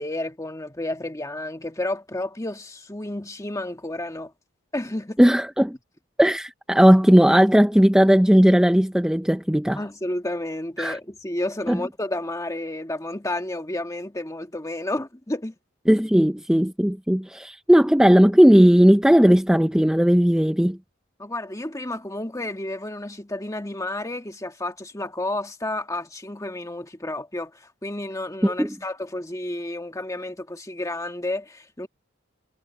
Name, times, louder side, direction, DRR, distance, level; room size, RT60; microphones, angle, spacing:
voice 1, 0.0-4.3 4.7-5.2 9.8-15.5 21.2-31.9, left 1 dB, 15° left, 1.7 m, -31 dB
voice 2, 5.2-5.7 6.2-9.8 10.8-11.0 11.7-11.8 15.9-20.8 28.4-28.7, equal, 5° right, 0.5 m, -17 dB
head